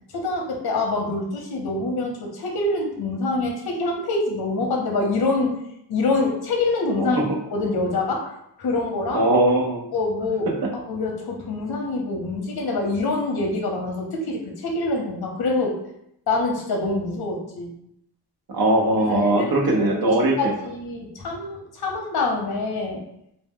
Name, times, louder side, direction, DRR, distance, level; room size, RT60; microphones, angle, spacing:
voice 1, 0.1-5.6 5.9-7.2 7.5-8.3 8.6-9.2 9.9-15.8 16.3-17.7 19.0-23.0, left 2 dB, 65° left, 1 dB, 0.6 m, -25 dB
voice 2, 9.1-9.8 18.5-20.5, right 1 dB, 60° right, 1 dB, 0.6 m, -20 dB
2.0 x 2.0 x 3.5 m, 0.75 s
wide cardioid pair, 115°, 41 cm